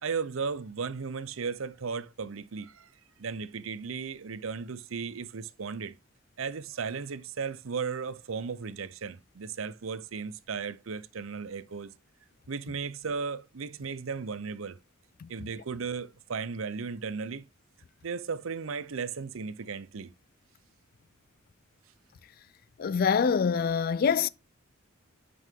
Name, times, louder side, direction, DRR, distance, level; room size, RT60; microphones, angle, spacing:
voice 1, 0.0-2.9 3.2-5.9 6.4-11.9 12.5-14.8 15.3-17.4 18.0-20.1, right 5 dB, 85° right, 0.6 m, -35 dB
voice 2, 22.8-24.3, left 6 dB, 45° left, 0.3 m, -25 dB
8.3 x 5.5 x 3.6 m
head